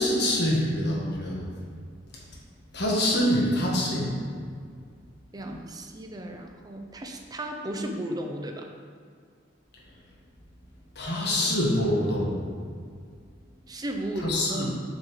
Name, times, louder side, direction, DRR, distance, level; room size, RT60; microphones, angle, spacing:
voice 1, 0.0-1.4 2.7-4.2 10.9-12.4 14.2-14.7, left 1 dB, 60° left, -3 dB, 1.5 m, -25 dB
voice 2, 5.3-8.7 13.7-14.8, right 1 dB, 20° right, 3 dB, 0.5 m, -34 dB
7.4 x 5.0 x 3.2 m, 2.1 s
head